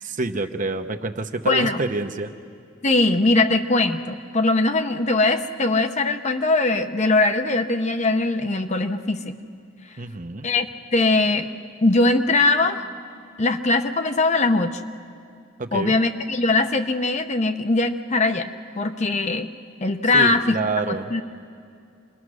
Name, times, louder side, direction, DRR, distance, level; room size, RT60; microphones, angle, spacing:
voice 1, 0.0-2.3 10.0-10.5 15.6-16.0 20.1-21.1, right 3 dB, 40° right, 7 dB, 0.9 m, -27 dB
voice 2, 1.5-1.8 2.8-9.3 10.4-10.7 10.9-11.5 11.8-12.8 13.4-14.8 15.7-19.5 19.8-20.6 20.9-21.2, left 2 dB, 35° left, 7 dB, 0.8 m, -21 dB
27.5 x 21.0 x 6.4 m, 2.5 s
head